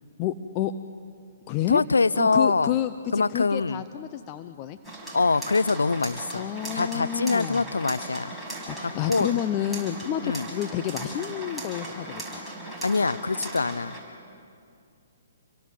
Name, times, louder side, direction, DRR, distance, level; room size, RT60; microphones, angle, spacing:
voice 1, 0.2-0.7 1.5-1.8 2.2-4.8 6.3-7.6 8.7-12.4, left 11 dB, 35° left, 9 dB, 0.8 m, -29 dB
voice 2, 1.7-2.7 3.1-3.8 5.1-8.3 8.8-9.3 10.2-10.5 12.8-14.0, left 4 dB, 85° left, 16 dB, 0.6 m, -24 dB
sound 1, 4.8-14.0, right 1 dB, 5° left, 5.9 m, -38 dB
28.5 x 23.5 x 7.7 m, 2.4 s
figure-of-eight pair, 130°, 0 cm